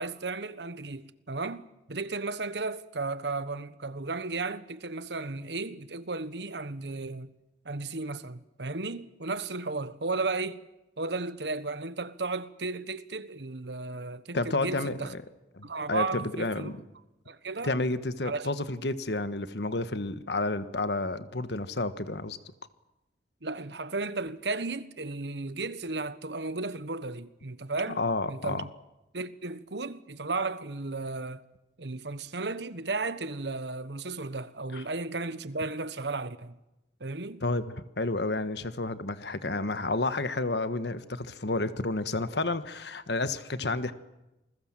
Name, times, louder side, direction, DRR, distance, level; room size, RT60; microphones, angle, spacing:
voice 1, 0.0-1.6 1.9-7.3 7.6-10.6 11.0-15.1 15.6-16.7 17.3-17.7 18.2-18.5 23.4-28.0 28.3-28.7 29.1-31.4 31.8-36.6 37.0-37.4, right 3 dB, 75° right, 1.3 m, -34 dB
voice 2, 14.3-15.2 15.5-16.8 17.6-22.4 27.9-28.7 34.7-34.8 37.4-43.9, left 2 dB, 70° left, 1.4 m, -30 dB
28.5 x 21.0 x 7.5 m
head